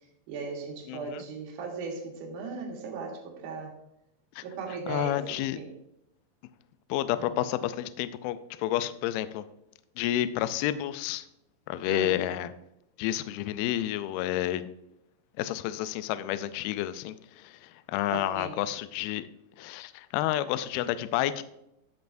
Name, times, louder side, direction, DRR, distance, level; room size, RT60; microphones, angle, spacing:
voice 1, 0.3-3.8 4.4-5.7 11.9-12.2 18.1-18.6, right 4 dB, 60° right, 1 dB, 2.5 m, -37 dB
voice 2, 0.9-1.2 4.4-4.5 4.9-5.6 6.9-9.5 10.0-11.3 11.7-12.5 13.0-14.6 15.4-19.3 19.6-21.4, left 13 dB, 90° left, 12 dB, 2.1 m, -30 dB
15.0 x 5.4 x 2.6 m, 0.84 s
omnidirectional pair, 4.9 m